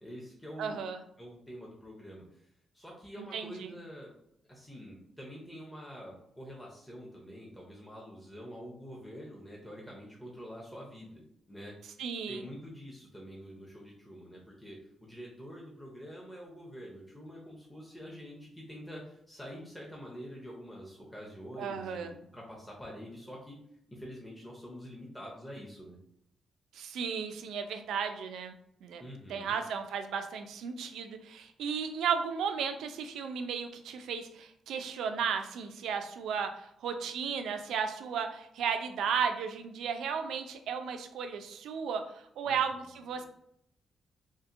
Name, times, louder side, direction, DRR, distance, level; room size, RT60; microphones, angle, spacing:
voice 1, 0.0-0.8 1.2-2.5 2.7-4.1 4.5-11.2 11.5-11.7 12.3-23.6 23.9-26.0 29.0-29.6 42.5-42.9 43.1-43.3, equal, 5° left, -4 dB, 0.6 m, -46 dB
voice 2, 0.6-1.0 3.2-3.7 12.0-12.4 21.6-22.1 26.7-28.5 28.8-29.0 29.3-42.0 42.4-43.3, right 6 dB, 90° right, 7 dB, 0.3 m, -34 dB
2.7 x 2.5 x 2.5 m, 0.73 s
cardioid pair, 125°, 0 cm